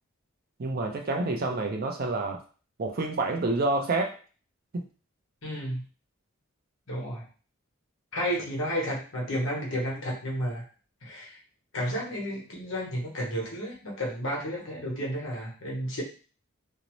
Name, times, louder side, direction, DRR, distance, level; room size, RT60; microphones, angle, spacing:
voice 1, 0.6-2.4 2.8-4.2 4.7-4.8, right 2 dB, 45° right, 3 dB, 0.4 m, -28 dB
voice 2, 5.4-5.8 6.9-7.2 8.1-10.6 11.0-11.4 11.7-16.0, equal, 65° left, -2 dB, 1.0 m, -32 dB
2.6 x 2.0 x 2.9 m, 0.37 s
head